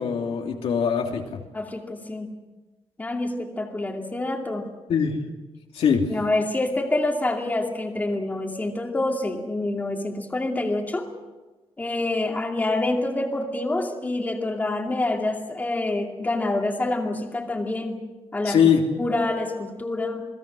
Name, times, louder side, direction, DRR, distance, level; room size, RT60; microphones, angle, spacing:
voice 1, 0.0-1.4 4.9-5.2 5.7-6.1 18.4-18.8, left 7 dB, 70° left, 1 dB, 3.0 m, -22 dB
voice 2, 1.5-2.3 3.0-4.7 6.1-11.1 11.8-18.0 18.3-18.6 19.0-20.3, left 2 dB, 15° left, 1 dB, 2.5 m, -27 dB
28.5 x 20.0 x 6.4 m, 1.2 s
wide cardioid pair, 165°, 10 cm